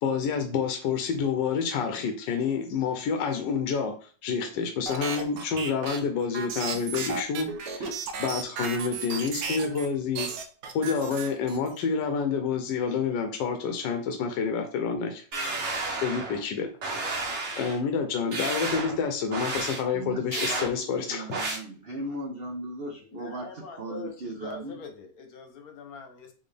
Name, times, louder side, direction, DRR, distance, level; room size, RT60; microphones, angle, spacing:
voice 1, 0.0-3.9 4.2-7.9 8.2-10.3 10.7-15.2 16.0-16.7 17.5-21.4, left 6 dB, 85° left, 5 dB, 1.3 m, -28 dB
sound 1, 4.9-9.9 10.1-11.8, right 5 dB, 85° right, 1.3 m, -34 dB
sound 2, 15.3-16.4 16.8-17.8 18.3-19.0 19.3-19.8 20.3-20.7 21.3-21.6, right 3 dB, 45° right, 1.2 m, -31 dB
voice 2, 19.9-20.7 21.0-24.8, right 1 dB, 65° right, 1 dB, 0.6 m, -37 dB
voice 3, 23.1-26.3, left 4 dB, 60° left, 5 dB, 1.3 m, -43 dB
4.2 x 3.4 x 3.3 m, 0.42 s
omnidirectional pair, 1.9 m